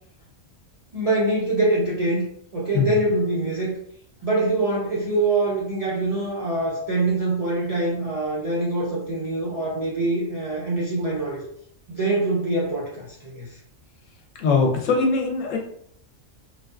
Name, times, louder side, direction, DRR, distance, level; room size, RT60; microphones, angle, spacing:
voice 1, 0.9-2.2 2.5-3.7 4.2-11.4 11.9-13.6, right 2 dB, 55° right, -6 dB, 0.4 m, -24 dB
voice 2, 14.4-15.6, left 4 dB, 80° left, 1 dB, 1.0 m, -21 dB
2.5 x 2.3 x 2.3 m, 0.66 s
omnidirectional pair, 1.3 m